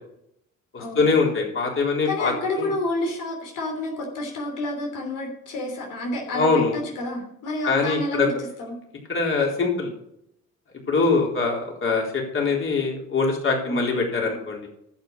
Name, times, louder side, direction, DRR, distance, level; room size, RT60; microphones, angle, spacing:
voice 1, 0.7-2.3 2.6-2.7 6.3-6.8 7.6-8.3 9.1-9.9 10.9-14.6, left 4 dB, 45° left, -1 dB, 4.1 m, -23 dB
voice 2, 2.0-8.3 8.6-8.8 13.6-13.9 14.3-14.4, left 1 dB, 90° left, 1 dB, 3.3 m, -29 dB
11.5 x 7.9 x 6.3 m, 0.75 s
cardioid pair, 90°, 30 cm